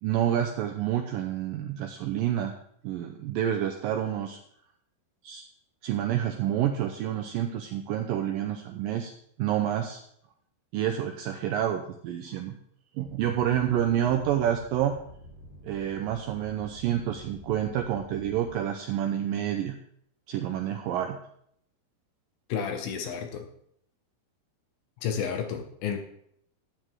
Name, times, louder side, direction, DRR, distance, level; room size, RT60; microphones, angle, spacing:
voice 1, 0.0-2.5 2.8-4.4 5.2-5.4 5.8-9.1 9.4-10.0 10.7-12.6 13.0-14.9 15.6-19.8 20.3-21.2, right 10 dB, 90° right, 4 dB, 2.0 m, -28 dB
sound 1, 13.0-18.6, equal, 50° left, 5.9 m, -49 dB
voice 2, 22.5-23.5 25.0-26.0, left 7 dB, 70° left, 5 dB, 2.6 m, -31 dB
13.0 x 9.1 x 3.7 m, 0.69 s
omnidirectional pair, 4.8 m